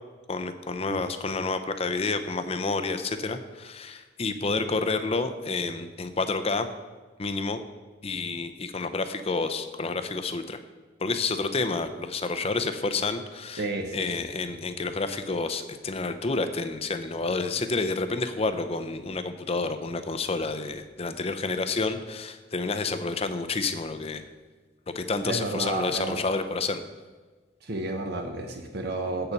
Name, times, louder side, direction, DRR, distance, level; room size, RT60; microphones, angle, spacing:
voice 1, 0.3-6.7 7.2-7.6 8.0-10.6 11.0-13.7 13.9-24.2 24.9-26.8, left 3 dB, 30° left, 9 dB, 0.6 m, -29 dB
voice 2, 13.6-14.1 25.2-26.2 27.6-29.3, right 2 dB, 55° right, 4 dB, 0.8 m, -31 dB
8.1 x 6.8 x 5.9 m, 1.3 s
head